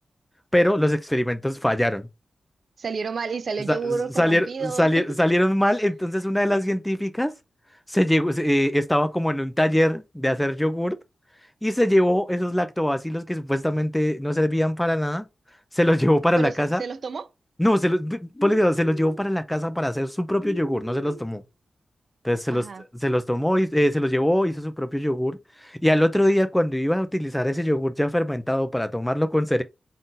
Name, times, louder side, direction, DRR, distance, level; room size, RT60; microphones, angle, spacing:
voice 1, 0.5-2.1 3.7-7.3 7.9-11.0 11.6-15.2 15.7-16.8 17.6-21.4 22.2-22.7 22.9-29.6, equal, 5° left, 0.5 m, -22 dB
voice 2, 2.8-5.0 16.4-17.3 22.5-22.8, right 5 dB, 60° right, 0.5 m, -30 dB
sound 1, 18.3-19.3 20.4-21.3, right 1 dB, 35° left, 2.0 m, -39 dB
3.9 x 2.6 x 3.8 m
wide cardioid pair, 100°, 0 cm